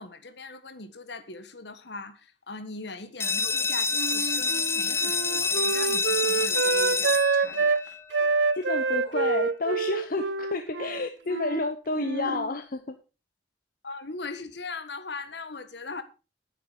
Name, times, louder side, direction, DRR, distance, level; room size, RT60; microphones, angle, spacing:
voice 1, 0.0-8.4 12.0-12.4 13.8-16.0, left 3 dB, 65° left, 1.5 m, -40 dB
sound 1, 3.2-8.6, left 4 dB, 15° left, 0.6 m, -28 dB
Wind instrument woodwind instrument, 3.9-7.8 8.1-11.7 11.9-12.5, right 4 dB, 75° right, 0.7 m, -27 dB
voice 2, 8.5-13.0, left 3 dB, 50° left, 0.9 m, -30 dB
10.5 x 9.5 x 5.0 m
head